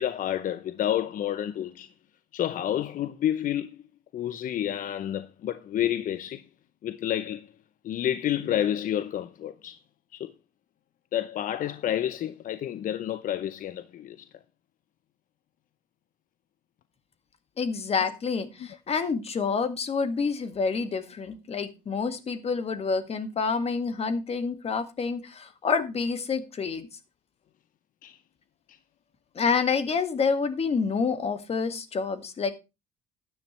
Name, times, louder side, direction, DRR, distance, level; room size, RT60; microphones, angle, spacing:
voice 1, 0.0-1.9 2.3-3.8 4.1-6.4 6.8-7.5 7.8-9.8 10.1-10.3 11.1-14.3 28.0-28.2 28.7-28.8, left 11 dB, 55° left, 0.7 m, -29 dB
voice 2, 17.6-26.9 29.4-32.5, left 5 dB, 35° left, 1.9 m, -28 dB
13.0 x 10.0 x 3.2 m
cardioid pair, 110°, 17 cm